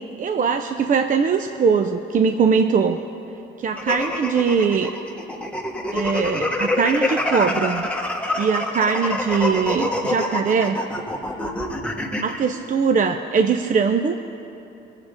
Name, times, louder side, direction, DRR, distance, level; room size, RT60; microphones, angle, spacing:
voice 1, 0.2-3.0 3.6-4.9 5.9-7.9 8.4-10.8 12.2-14.2, right 5 dB, 40° right, 6 dB, 0.5 m, -21 dB
sound 1, 3.8-12.4, left 2 dB, 5° left, 1.1 m, -26 dB
21.0 x 7.4 x 5.1 m, 3.0 s
cardioid pair, 90°, 20 cm